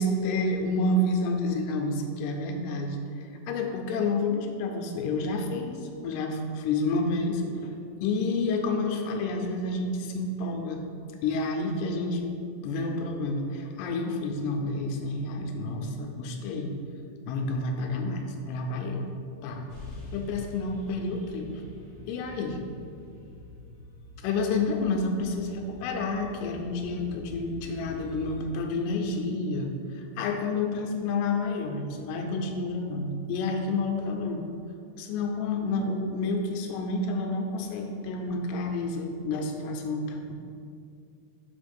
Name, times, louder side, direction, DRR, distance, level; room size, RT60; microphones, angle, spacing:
voice 1, 0.0-7.7 8.0-10.8 11.2-12.4 12.6-16.7 17.3-19.1 19.4-19.6 20.1-21.5 22.1-22.6 24.2-34.4 35.0-40.3, left 2 dB, 80° left, 3 dB, 2.3 m, -29 dB
sound 1, 19.7-28.4, left 2 dB, 50° left, 1.8 m, -45 dB
6.2 x 4.7 x 5.3 m, 2.4 s
omnidirectional pair, 3.9 m